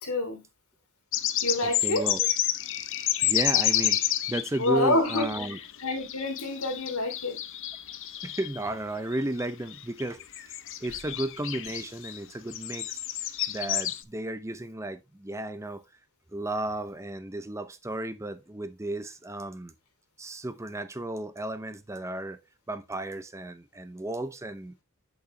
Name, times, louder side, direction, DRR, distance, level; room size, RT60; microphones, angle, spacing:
voice 1, 0.0-0.4 1.4-2.0 4.6-5.3 5.8-7.4, left 2 dB, 85° left, 2.9 m, -27 dB
sound 1, 1.1-8.6 9.1-9.4 9.7-12.2 12.5-14.0, left 13 dB, 60° left, 0.7 m, -29 dB
voice 2, 1.6-2.3 3.2-4.0 4.3-5.6 8.2-13.0 13.5-15.8 16.3-19.7 20.2-22.4 22.7-24.7, right 1 dB, 15° right, 0.6 m, -34 dB
8.5 x 6.5 x 3.2 m
head